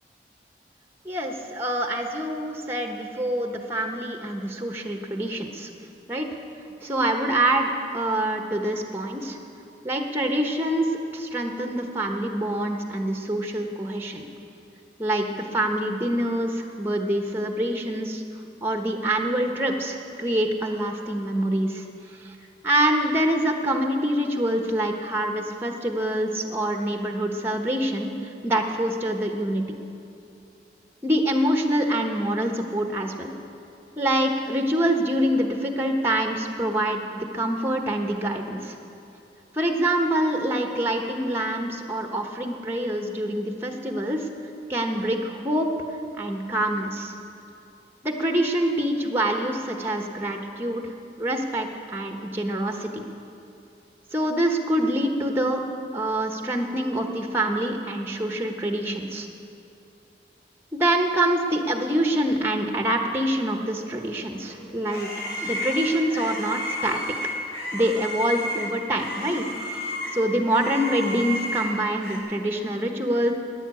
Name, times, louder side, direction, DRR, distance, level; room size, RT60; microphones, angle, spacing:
voice 1, 1.0-5.7 6.1-6.3 6.8-9.4 9.8-14.2 15.0-18.2 18.6-21.8 22.2-22.4 22.6-29.6 31.0-33.3 34.0-38.7 39.5-44.3 44.7-45.7 46.1-47.1 48.0-50.9 51.2-52.9 54.1-55.6 55.9-59.3 60.7-65.1 65.4-67.0 67.7-73.3, right 1 dB, 15° right, 3 dB, 1.1 m, -25 dB
sound 1, 64.3-72.2, left 1 dB, 80° left, 4.8 m, -32 dB
16.0 x 10.5 x 8.3 m, 2.7 s
head